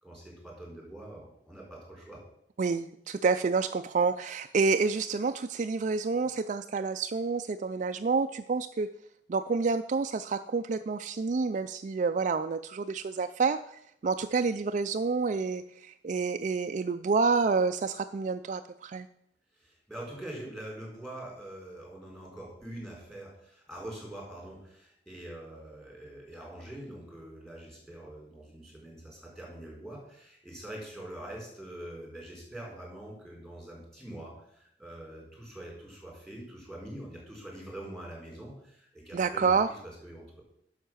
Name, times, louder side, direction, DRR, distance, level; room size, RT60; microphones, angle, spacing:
voice 1, 0.0-2.2 19.5-40.4, right 1 dB, ahead, -2 dB, 4.1 m, -44 dB
voice 2, 2.6-8.9 9.3-19.1 39.1-39.7, right 4 dB, 45° right, 9 dB, 0.4 m, -28 dB
10.5 x 6.5 x 6.2 m, 0.73 s
head